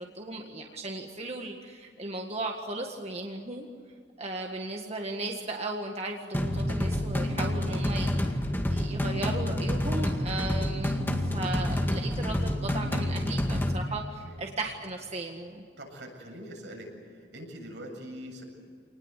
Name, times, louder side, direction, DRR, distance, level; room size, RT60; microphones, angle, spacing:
voice 1, 0.0-3.7 4.2-8.4 8.7-15.6, right 2 dB, 35° right, 2 dB, 1.8 m, -36 dB
sound 1, 6.3-13.7, left 1 dB, 10° left, 2.1 m, -28 dB
voice 2, 7.4-7.8 8.1-8.2 14.2-14.4 15.8-18.4, equal, 80° right, 1 dB, 7.7 m, -44 dB
27.5 x 20.0 x 8.4 m, 2.2 s
head